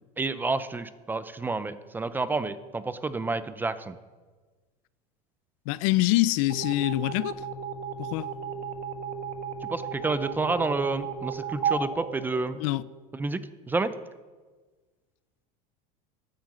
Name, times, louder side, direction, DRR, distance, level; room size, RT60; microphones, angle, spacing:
voice 1, 0.2-4.0 9.7-12.6 13.1-13.4 13.7-13.9, right 3 dB, 10° right, 0.4 m, -29 dB
voice 2, 5.7-7.4 8.0-8.3 12.6-12.8, left 18 dB, 60° left, 0.4 m, -25 dB
sound 1, 6.5-13.0, right 6 dB, 45° right, 1.4 m, -34 dB
9.6 x 9.3 x 7.6 m
supercardioid pair, 145°, 19 cm